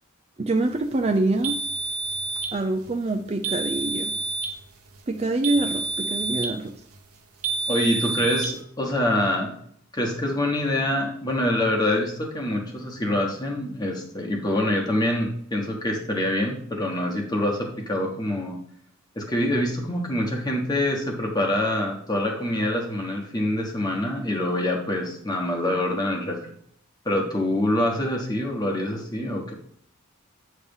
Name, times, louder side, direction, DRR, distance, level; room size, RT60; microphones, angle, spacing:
voice 1, 0.4-1.6 2.5-4.1 5.1-6.7, right 2 dB, 30° right, 5 dB, 0.4 m, -25 dB
sound 1, 1.4-2.6 3.4-4.6 5.4-6.6 7.4-8.6, right 3 dB, 80° right, 1.0 m, -28 dB
voice 2, 7.7-9.5 9.9-18.6 19.1-26.4 27.0-29.5, left 1 dB, 15° left, 0 dB, 1.2 m, -25 dB
8.4 x 3.3 x 5.4 m, 0.65 s
head